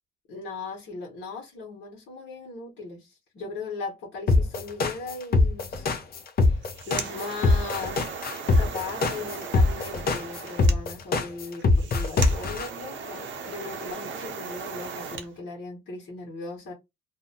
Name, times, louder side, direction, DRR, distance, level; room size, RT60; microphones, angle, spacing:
voice 1, 0.3-6.0 6.4-8.0 8.5-16.7, left 3 dB, 65° left, 1.1 m, -38 dB
sound 1, 4.3-12.7, left 3 dB, 50° left, 0.6 m, -22 dB
sound 2, 6.5-15.3, right 5 dB, 75° right, 0.7 m, -37 dB
2.6 x 2.1 x 2.7 m
cardioid pair, 90°, 20 cm